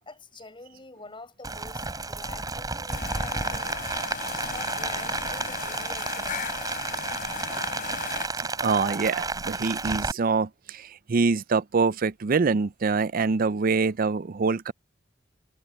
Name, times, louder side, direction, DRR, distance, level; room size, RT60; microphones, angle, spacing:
voice 1, 0.0-3.8 4.5-6.6, left 3 dB, 25° left, 7.3 m, -45 dB
Rain, 1.4-10.1, right 3 dB, 20° right, 6.9 m, -32 dB
sound 1, 2.9-8.3, left 6 dB, 45° left, 3.5 m, -36 dB
voice 2, 8.4-14.7, right 4 dB, 50° right, 0.5 m, -25 dB
head